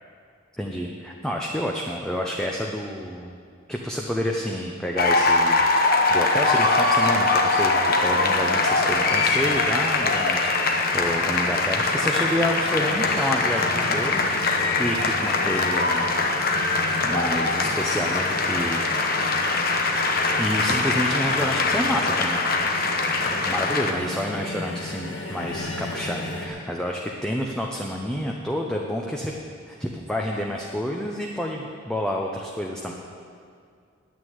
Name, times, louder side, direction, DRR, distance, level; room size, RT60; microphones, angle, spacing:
voice 1, 0.6-3.4 3.7-16.1 17.0-18.8 20.4-22.6 23.2-29.3 29.7-32.9, equal, 5° left, -1 dB, 0.7 m, -29 dB
sound 1, 5.0-23.9, left 3 dB, 50° left, 1.0 m, -22 dB
sound 2, 8.2-26.5, left 2 dB, 65° left, 1.7 m, -34 dB
9.4 x 8.4 x 9.4 m, 2.2 s
head